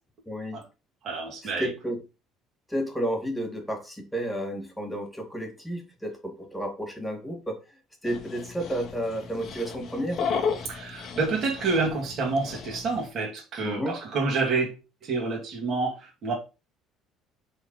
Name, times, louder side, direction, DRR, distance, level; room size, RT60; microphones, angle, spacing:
voice 1, 0.3-0.6 1.6-2.0 2.7-7.6 8.0-10.3 13.6-14.0, equal, 5° left, 1.7 m, -31 dB
voice 2, 1.0-1.7 10.6-14.8 15.0-16.3, right 3 dB, 40° right, 2.5 m, -28 dB
Dog, 8.1-13.1, left 6 dB, 45° left, 1.2 m, -34 dB
5.3 x 4.0 x 5.3 m
cardioid pair, 160°, 0 cm